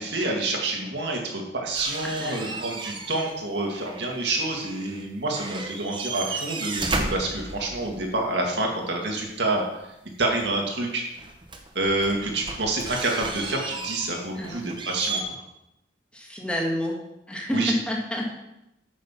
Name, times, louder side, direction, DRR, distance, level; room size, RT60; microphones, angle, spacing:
voice 1, 0.0-9.6 10.2-11.0 11.7-15.4 17.5-17.7, right 2 dB, 70° right, 0 dB, 2.1 m, -28 dB
sound 1, 1.7-3.4 3.6-5.1 5.3-8.1 10.4-10.5 11.2-15.2, right 3 dB, 25° right, 1.0 m, -34 dB
voice 2, 2.0-2.6 14.3-14.7 16.1-17.0 17.3-18.4, equal, 5° left, -1 dB, 1.6 m, -29 dB
8.8 x 6.5 x 5.8 m, 0.89 s
head